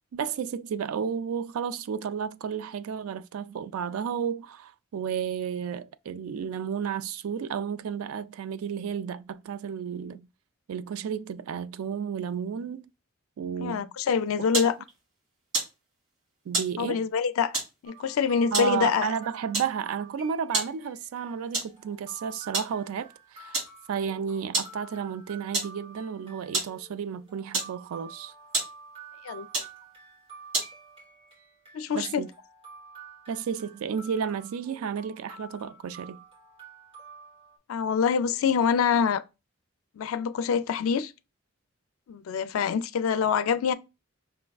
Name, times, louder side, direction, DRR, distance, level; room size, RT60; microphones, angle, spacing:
voice 1, 0.1-10.3 10.7-12.8 13.4-13.9 14.4-14.5 16.5-17.1 18.5-23.6 23.9-28.3 31.9-32.3 33.3-36.2, right 7 dB, 85° right, 0.3 m, -32 dB
voice 2, 13.6-14.8 16.8-17.5 17.8-19.1 29.2-29.5 31.7-32.2 37.7-39.2 40.0-41.1 42.1-43.7, left 6 dB, 80° left, 0.4 m, -25 dB
sound 1, 14.1-31.0, right 3 dB, 60° right, 2.2 m, -35 dB
sound 2, 17.8-37.6, right 4 dB, 25° right, 2.1 m, -49 dB
5.3 x 3.3 x 2.3 m
head